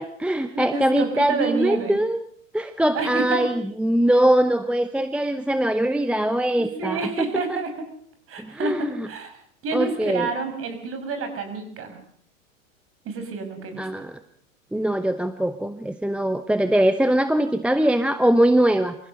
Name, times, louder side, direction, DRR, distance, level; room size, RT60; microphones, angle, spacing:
voice 1, 0.0-2.3 2.5-7.0 7.3-7.6 8.4-9.1 9.7-10.3 13.8-14.2 14.7-19.0, right 1 dB, 5° right, 10 dB, 0.8 m, -22 dB
voice 2, 0.5-2.0 2.9-3.5 6.6-7.9 8.3-9.3 9.6-12.0 13.0-13.9, right 4 dB, 35° right, 7 dB, 6.2 m, -29 dB
25.5 x 15.5 x 6.7 m, 0.62 s
hypercardioid pair, 110°, 40 cm